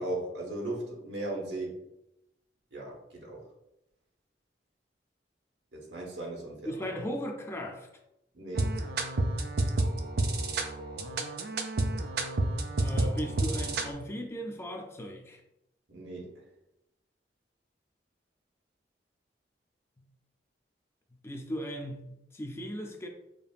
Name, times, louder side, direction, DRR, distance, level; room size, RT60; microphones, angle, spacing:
voice 1, 0.0-1.8 2.7-3.4 5.7-7.0 8.3-8.9 15.9-16.4, right 1 dB, 85° right, 1.2 m, -37 dB
voice 2, 6.7-7.9 12.8-15.4 20.0-20.1 21.2-22.1 22.3-23.1, equal, 15° left, 0.4 m, -37 dB
sound 1, 8.6-13.9, right 2 dB, 60° right, 0.4 m, -30 dB
5.1 x 2.7 x 2.4 m
head